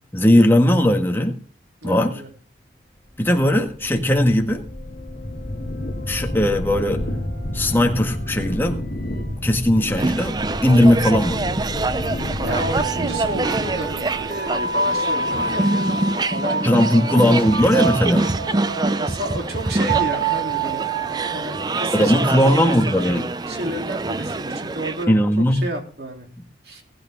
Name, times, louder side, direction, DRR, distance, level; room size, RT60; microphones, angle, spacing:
voice 1, 0.1-1.3 1.8-2.1 3.2-4.6 6.1-7.0 7.5-8.8 9.4-10.4 10.6-11.5 16.6-18.3 21.9-23.3 25.1-25.6, left 1 dB, 10° left, 2 dB, 1.8 m, -18 dB
voice 2, 1.8-2.3 12.4-17.3 19.0-20.9 21.3-23.1 23.5-26.3 26.6-26.8, right 1 dB, 65° right, 2 dB, 3.4 m, -31 dB
sound 1, 3.2-15.3, left 1 dB, 60° left, 2.7 m, -30 dB
sound 2, 10.0-25.0, right 2 dB, 25° right, 0.5 m, -25 dB
sound 3, 12.8-23.7, right 4 dB, 80° right, 1.0 m, -28 dB
19.5 x 9.0 x 3.7 m, 0.42 s
head